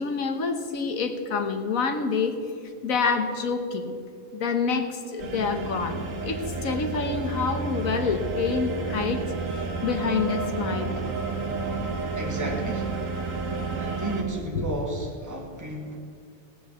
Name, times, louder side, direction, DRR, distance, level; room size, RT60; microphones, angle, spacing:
voice 1, 0.0-2.4 2.8-4.0 4.3-9.2 9.8-11.0 14.5-14.6, left 5 dB, 85° left, 6 dB, 1.6 m, -27 dB
sound 1, 5.2-14.2, right 4 dB, 70° right, 1.8 m, -31 dB
voice 2, 12.1-13.0 13.8-16.0, right 1 dB, 15° right, -1 dB, 1.8 m, -33 dB
17.5 x 6.2 x 8.2 m, 2.3 s
omnidirectional pair, 1.4 m